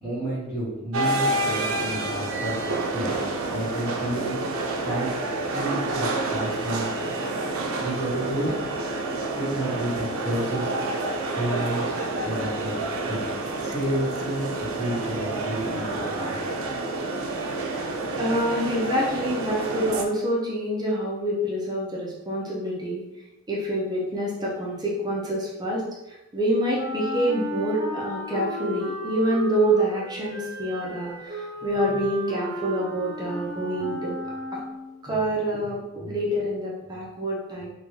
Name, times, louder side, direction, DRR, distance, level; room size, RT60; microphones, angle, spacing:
voice 1, 0.0-2.6 2.9-3.2 3.5-4.4 4.8-5.2 5.5-6.9 7.8-8.5 9.3-10.7 11.3-12.8 13.1-13.2 13.6-16.4, right 1 dB, 10° left, -11 dB, 1.4 m, -30 dB
sound 1, 0.9-20.0, right 2 dB, 70° right, 0.4 m, -29 dB
voice 2, 18.2-23.0 23.5-25.9 26.3-34.1 34.5-34.6 35.0-37.7, right 1 dB, 20° right, -5 dB, 0.7 m, -27 dB
Wind instrument woodwind instrument, 26.7-35.0, right 1 dB, 50° right, 1.1 m, -33 dB
3.7 x 2.3 x 3.2 m, 0.97 s
head